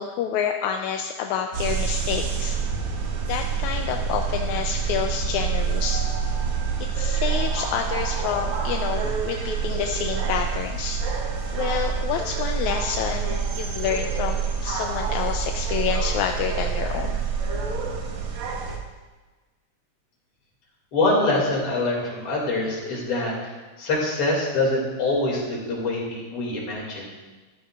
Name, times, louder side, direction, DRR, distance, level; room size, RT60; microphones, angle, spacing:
voice 1, 0.0-2.6 3.3-6.1 6.8-11.0 11.5-17.2, left 8 dB, 80° left, 4 dB, 1.9 m, -28 dB
sound 1, 1.5-18.8, right 6 dB, 70° right, 2.4 m, -27 dB
voice 2, 20.9-23.3 23.8-27.1, left 2 dB, 45° left, -3 dB, 3.3 m, -24 dB
13.5 x 13.0 x 2.5 m, 1.3 s
omnidirectional pair, 3.5 m